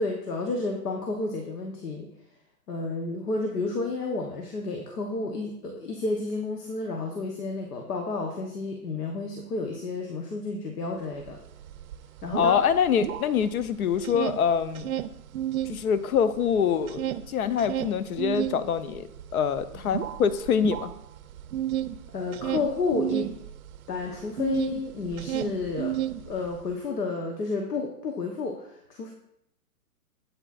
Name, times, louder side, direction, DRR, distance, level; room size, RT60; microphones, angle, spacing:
voice 1, 0.0-2.1 2.7-11.4 12.2-12.5 19.7-19.9 22.1-23.3 23.9-26.0 26.3-29.1, left 3 dB, 85° left, 2 dB, 1.2 m, -31 dB
sound 1, 11.3-11.4 11.6-13.6 13.9-15.8 16.2-24.8 25.1-26.6, right 12 dB, 70° right, 0.5 m, -31 dB
voice 2, 12.3-14.9 15.7-19.1 19.3-20.9, left 7 dB, 70° left, 13 dB, 0.8 m, -25 dB
8.1 x 7.6 x 2.5 m, 0.79 s
hypercardioid pair, 145°, 46 cm